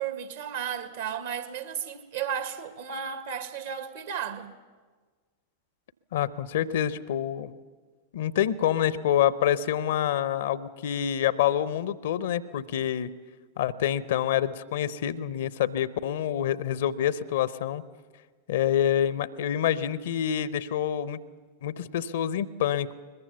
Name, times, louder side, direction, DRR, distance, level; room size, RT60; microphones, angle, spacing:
voice 1, 0.0-4.5, right 8 dB, 60° right, 1.5 m, -34 dB
voice 2, 6.1-7.5 8.1-13.1 13.6-17.8 18.5-21.2 21.6-22.9, left 10 dB, 55° left, 0.7 m, -27 dB
22.0 x 21.5 x 7.0 m
figure-of-eight pair, 90°, 0 cm